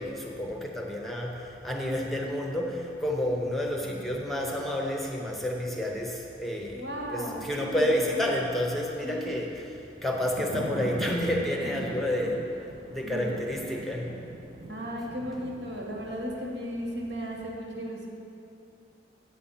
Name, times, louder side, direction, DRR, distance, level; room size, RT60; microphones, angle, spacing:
voice 1, 0.0-6.9 7.1-12.4 12.9-14.1, left 1 dB, ahead, -1 dB, 0.8 m, -30 dB
voice 2, 6.7-8.2 9.0-9.4 13.0-13.5 14.7-18.1, equal, 80° right, -2 dB, 2.1 m, -35 dB
sound 1, 10.0-17.1, right 2 dB, 35° right, 0.5 m, -40 dB
8.5 x 8.3 x 5.7 m, 2.8 s
head